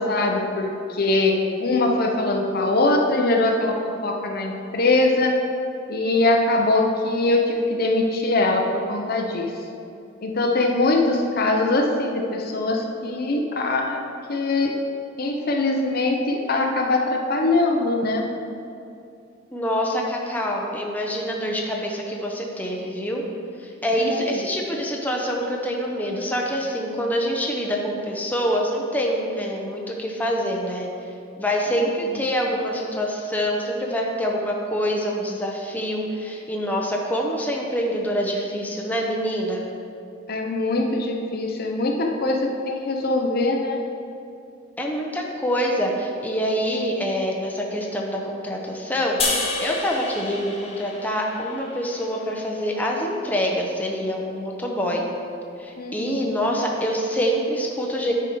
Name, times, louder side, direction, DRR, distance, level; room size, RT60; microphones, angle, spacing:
voice 1, 0.0-3.7 4.0-5.3 5.9-9.5 10.2-14.0 14.3-14.7 15.2-18.2 24.0-24.2 31.8-31.9 40.3-43.8 55.8-56.3, left 2 dB, 50° left, 2 dB, 0.7 m, -22 dB
voice 2, 19.5-23.2 23.6-30.9 31.4-39.6 44.8-55.1 55.6-58.1, equal, 10° left, -1 dB, 0.7 m, -25 dB
sound 1, 49.2-52.5, left 3 dB, 30° left, 1.1 m, -30 dB
10.5 x 4.8 x 4.6 m, 2.6 s
head